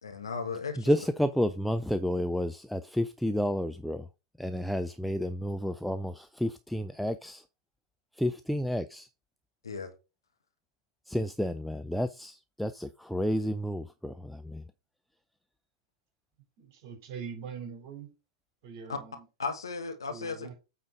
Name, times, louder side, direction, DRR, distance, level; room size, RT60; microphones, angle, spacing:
voice 1, 0.0-0.9 9.6-9.9 18.9-19.0 19.4-20.5, left 5 dB, 75° left, 1.6 m, -35 dB
voice 2, 0.8-4.0 4.4-7.4 8.2-9.1 11.1-14.6, equal, ahead, 0.4 m, -30 dB
voice 3, 16.6-18.1 18.6-19.3 20.1-20.6, right 6 dB, 45° right, 4.0 m, -42 dB
8.6 x 4.0 x 4.8 m
figure-of-eight pair, 105°, 2 cm